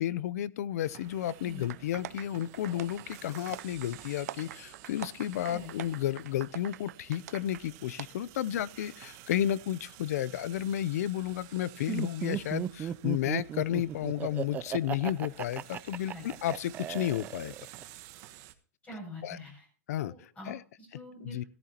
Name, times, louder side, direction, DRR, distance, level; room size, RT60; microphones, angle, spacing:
voice 1, 0.0-17.5 19.2-19.4 19.9-20.1 20.5-20.6 21.2-21.4, left 12 dB, 65° left, 0.6 m, -32 dB
sound 1, 0.8-18.5, right 14 dB, 40° right, 1.2 m, -52 dB
sound 2, 1.7-7.6 8.0-8.1, right 13 dB, 70° right, 0.5 m, -44 dB
Laughter, 11.9-17.8, right 9 dB, 20° right, 0.4 m, -36 dB
voice 2, 18.8-19.7 20.0-21.5, left 1 dB, 15° left, 7.3 m, -45 dB
14.5 x 13.5 x 2.9 m
hypercardioid pair, 140°, 9 cm